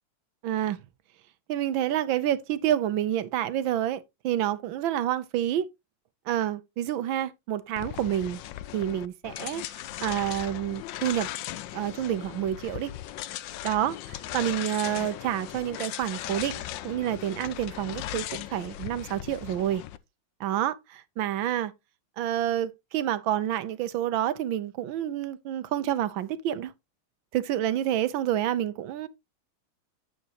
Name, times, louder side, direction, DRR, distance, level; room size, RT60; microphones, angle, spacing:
voice 1, 0.4-0.8 1.5-5.7 6.3-8.4 8.7-11.3 11.7-12.9 13.6-19.8 20.4-21.7 22.2-26.7 27.3-29.1, right 11 dB, 75° right, 1.5 m, -28 dB
sound 1, 7.8-20.0, left 14 dB, 75° left, 1.2 m, -38 dB
9.2 x 7.2 x 2.9 m
omnidirectional pair, 2.3 m